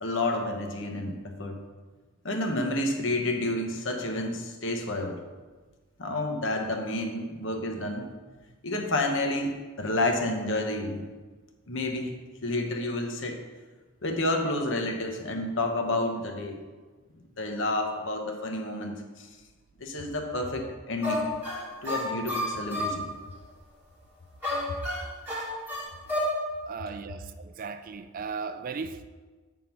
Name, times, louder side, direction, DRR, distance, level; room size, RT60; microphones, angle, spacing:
voice 1, 0.0-1.6 2.2-5.2 6.0-8.1 8.6-11.1 11.7-12.1 12.4-13.4 14.0-16.6 17.4-19.3 19.8-21.3 21.8-23.1, left 2 dB, 60° left, 1.0 m, -30 dB
violin muckabout, 21.0-23.0 24.4-26.4, left 1 dB, 10° right, 1.5 m, -30 dB
voice 2, 26.7-29.0, right 5 dB, 40° right, 0.3 m, -36 dB
8.3 x 3.7 x 6.0 m
head